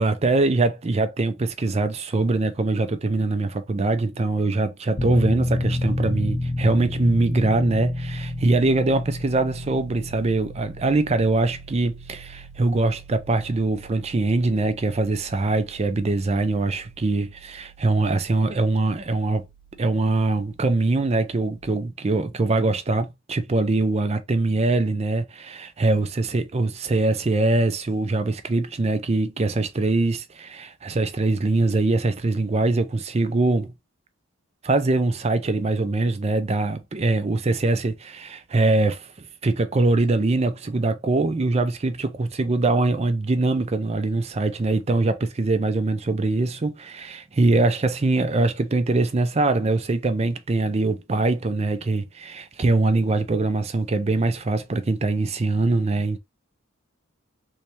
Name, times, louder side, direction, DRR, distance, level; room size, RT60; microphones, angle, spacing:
voice 1, 0.0-19.4 19.8-33.7 34.6-39.1 39.4-56.2, right 2 dB, 30° right, 0.4 m, -23 dB
Piano, 5.0-21.6, left 1 dB, 25° left, 0.5 m, -33 dB
3.3 x 3.2 x 2.8 m
head